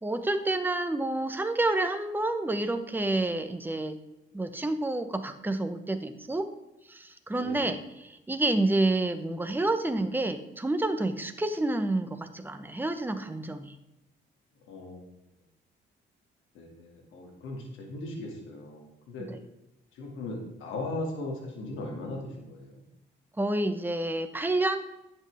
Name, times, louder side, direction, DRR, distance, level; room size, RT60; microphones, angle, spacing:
voice 1, 0.0-4.0 4.3-6.5 6.9-13.7 19.3-19.4 23.4-24.8, right 2 dB, 10° right, 8 dB, 1.0 m, -29 dB
voice 2, 7.4-7.7 14.7-15.1 16.5-19.3 19.9-22.8, left 2 dB, 85° left, 1 dB, 2.4 m, -38 dB
11.0 x 7.7 x 3.5 m, 0.92 s
cardioid pair, 90°, 20 cm